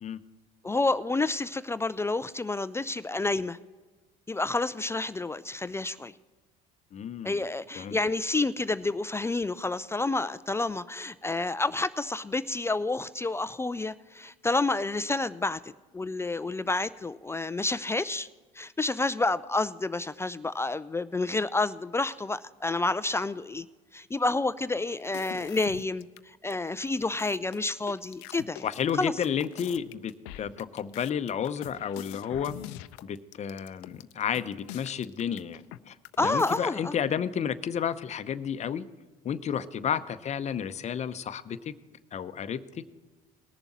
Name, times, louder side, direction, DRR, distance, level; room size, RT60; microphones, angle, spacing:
voice 1, 0.6-3.6 4.3-6.1 7.2-18.3 18.5-23.7 23.9-28.7 29.0-29.1 36.2-36.9, left 3 dB, 15° left, 14 dB, 0.4 m, -29 dB
voice 2, 6.9-7.4 7.8-8.0 28.6-32.6 33.0-38.8 39.2-41.7 42.1-42.9, left 8 dB, 40° left, 12 dB, 0.7 m, -32 dB
sound 1, 25.0-26.2 26.5-26.6 26.9-35.8 36.0-36.6, left 14 dB, 80° left, 0.5 m, -44 dB
19.5 x 7.0 x 4.2 m, 1.3 s
supercardioid pair, 85°, 18 cm